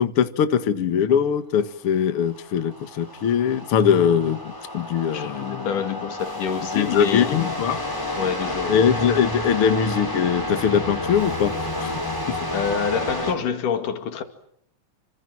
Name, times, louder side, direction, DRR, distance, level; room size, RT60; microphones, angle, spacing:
voice 1, 0.0-5.7 6.7-7.8 8.7-11.5 11.8-12.0 12.3-12.4, left 8 dB, 50° left, 2.1 m, -21 dB
sound 1, 2.2-13.3, left 1 dB, 5° left, 6.4 m, -30 dB
voice 2, 5.1-7.6 8.2-8.8 12.5-14.2, left 7 dB, 70° left, 3.8 m, -27 dB
29.0 x 26.5 x 7.6 m
omnidirectional pair, 3.8 m